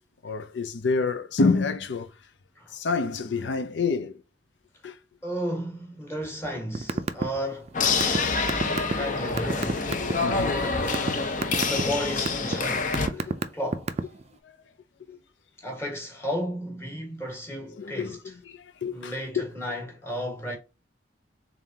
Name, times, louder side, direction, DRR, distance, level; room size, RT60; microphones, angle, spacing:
voice 1, 0.2-2.1 2.7-4.2 4.8-5.0 10.1-10.7 11.0-11.4 13.0-13.3 14.4-14.5 15.1-15.2 17.7-19.5, left 4 dB, 85° left, 0.5 m, -28 dB
voice 2, 5.2-7.8 8.5-9.9 11.5-13.9 15.6-18.2 18.9-20.6, equal, 15° left, 1.4 m, -33 dB
sound 1, 6.8-7.3 7.5-10.1 10.6-11.1 11.4-11.8 12.3-12.6 12.9-14.2, right 3 dB, 35° right, 0.4 m, -26 dB
sound 2, 7.7-13.1, left 4 dB, 45° left, 0.7 m, -26 dB
3.8 x 3.6 x 2.7 m
head